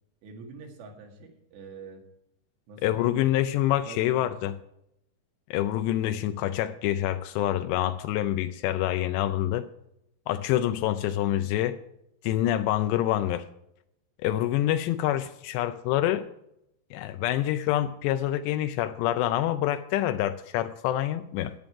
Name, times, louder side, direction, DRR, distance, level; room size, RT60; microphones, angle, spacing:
voice 1, 0.2-2.0 2.7-3.1 3.8-4.5, right 4 dB, 70° right, 3 dB, 3.8 m, -45 dB
voice 2, 2.8-4.6 5.5-9.7 10.3-11.8 12.2-13.5 14.2-16.3 16.9-21.5, left 13 dB, 80° left, 11 dB, 2.6 m, -26 dB
14.0 x 9.4 x 4.8 m, 0.81 s
omnidirectional pair, 5.2 m